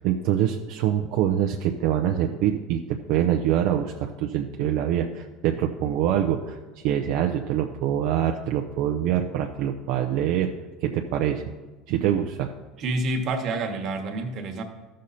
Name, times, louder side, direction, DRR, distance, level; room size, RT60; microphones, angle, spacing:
voice 1, 0.0-10.5 10.8-11.4 11.9-12.5, right 10 dB, 70° right, 3 dB, 0.6 m, -25 dB
voice 2, 12.8-14.6, right 2 dB, 45° right, 4 dB, 1.4 m, -28 dB
13.5 x 6.4 x 4.2 m, 1.2 s
supercardioid pair, 120°, 0 cm